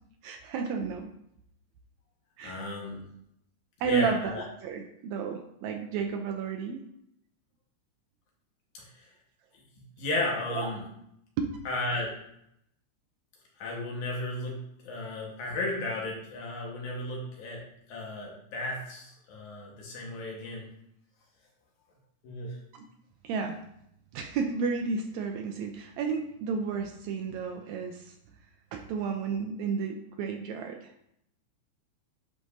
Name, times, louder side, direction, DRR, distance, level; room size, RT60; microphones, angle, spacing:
voice 1, 0.2-1.1 2.4-2.8 3.8-4.3 4.6-6.8 10.5-10.7 11.4-11.5 22.7-22.9 23.2-23.6 24.1-28.2 28.7-30.9, right 5 dB, 80° right, 4 dB, 1.8 m, -32 dB
voice 2, 2.4-3.1 3.8-4.4 8.7-9.1 9.8-10.8 11.7-12.2 13.6-20.7 22.2-22.6, left 2 dB, 80° left, -2 dB, 2.8 m, -34 dB
9.2 x 5.0 x 2.7 m, 0.76 s
omnidirectional pair, 3.4 m